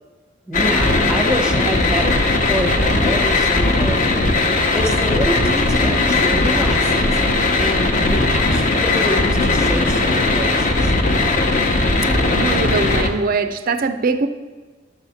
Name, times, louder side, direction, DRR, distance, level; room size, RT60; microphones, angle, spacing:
sound 1, 0.5-13.1, left 2 dB, 40° left, 0.9 m, -18 dB
voice 1, 0.5-4.0 4.7-7.1 7.6-10.9, equal, 5° right, 4 dB, 0.8 m, -26 dB
voice 2, 12.3-14.3, right 4 dB, 45° right, 10 dB, 0.4 m, -21 dB
11.5 x 4.1 x 7.1 m, 1.3 s
head